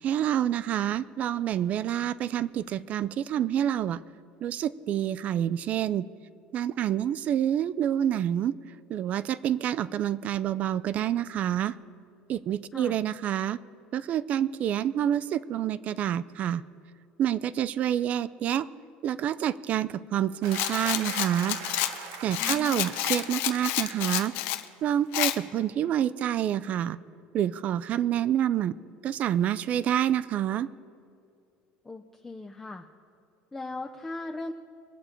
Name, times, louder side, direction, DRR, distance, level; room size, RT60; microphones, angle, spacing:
voice 1, 0.0-4.0 4.4-6.1 6.5-8.5 8.9-11.8 12.3-13.6 13.9-16.6 17.2-18.7 19.0-21.6 22.2-24.3 24.8-27.0 27.3-28.7 29.0-30.7, right 10 dB, 40° right, 17 dB, 0.4 m, -27 dB
sound 1, 20.4-25.1, right 6 dB, 85° right, 1.5 m, -43 dB
Rattle, 20.5-24.6 25.1-25.4, left 14 dB, 70° left, 0.7 m, -29 dB
voice 2, 22.4-22.9 31.8-32.9 33.5-34.5, left 2 dB, 10° left, 3 dB, 0.5 m, -38 dB
23.0 x 8.4 x 4.4 m, 2.5 s
cardioid pair, 145°, 4 cm